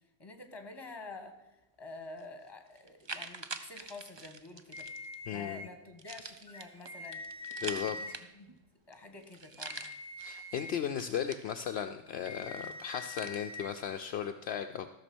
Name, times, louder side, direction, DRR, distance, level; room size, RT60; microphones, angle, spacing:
voice 1, 0.2-4.9 5.3-7.2 7.6-8.6 8.9-9.8, left 3 dB, 20° left, 6 dB, 1.5 m, -48 dB
sound 1, 2.2-2.3 2.8-5.2 6.0-8.6 8.9-9.0 9.2-10.2 10.7-11.9 12.3-13.4, right 4 dB, 30° right, 0.6 m, -45 dB
sound 2, 4.7-5.7 6.5-8.1 9.4-10.7 12.1-13.7, left 2 dB, 5° left, 0.9 m, -44 dB
voice 2, 5.3-5.7 7.6-8.0 10.2-14.9, left 8 dB, 70° left, 6 dB, 0.8 m, -36 dB
14.0 x 6.7 x 6.1 m, 0.98 s
omnidirectional pair, 1.2 m